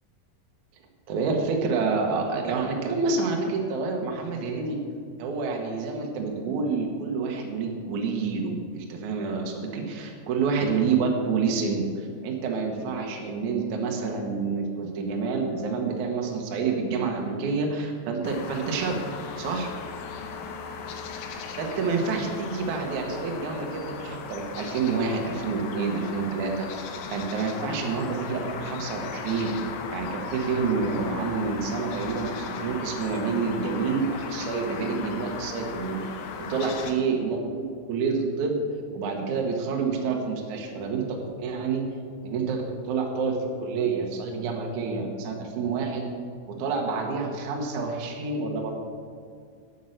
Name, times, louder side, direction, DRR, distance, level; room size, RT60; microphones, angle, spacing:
voice 1, 1.1-4.8 5.2-19.0 19.4-19.7 21.5-26.7 27.1-29.5 29.9-36.0 36.4-38.6 38.9-41.8 42.2-46.1 46.5-48.8, right 4 dB, 75° right, 1 dB, 1.8 m, -28 dB
sound 1, 18.2-36.9, left 5 dB, 75° left, 2.7 m, -37 dB
9.4 x 8.4 x 6.5 m, 2.2 s
omnidirectional pair, 5.3 m